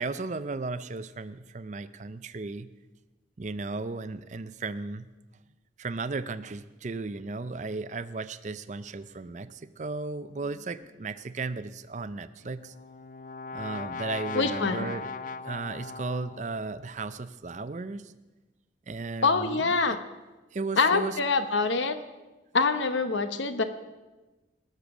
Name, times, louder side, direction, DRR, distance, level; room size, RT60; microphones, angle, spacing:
voice 1, 0.0-2.7 3.4-5.1 5.8-12.7 13.5-15.1 15.4-18.1 18.9-20.0 20.5-21.2, right 3 dB, 40° right, 14 dB, 0.5 m, -35 dB
Brass instrument, 12.4-16.6, left 4 dB, 45° left, 0.4 m, -38 dB
voice 2, 14.3-14.9 19.2-20.0 20.8-22.0 22.5-23.6, left 4 dB, 80° left, 10 dB, 0.9 m, -25 dB
19.5 x 6.9 x 6.1 m, 1.2 s
head